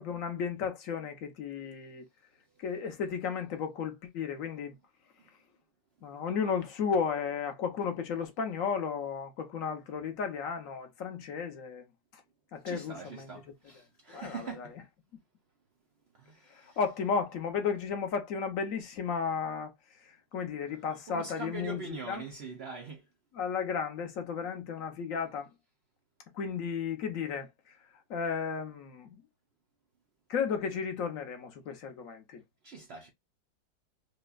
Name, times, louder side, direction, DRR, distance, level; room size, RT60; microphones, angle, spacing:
voice 1, 0.0-2.0 2.6-4.7 6.0-11.9 12.5-13.3 14.1-14.7 16.5-19.7 20.0-22.2 23.3-25.5 26.3-27.5 28.1-29.2 30.3-32.4, left 6 dB, 55° left, 1.1 m, -34 dB
voice 2, 12.5-14.8 16.1-16.8 20.9-23.1 32.6-33.1, right 5 dB, 80° right, 0.5 m, -43 dB
5.1 x 2.2 x 2.3 m
omnidirectional pair, 1.9 m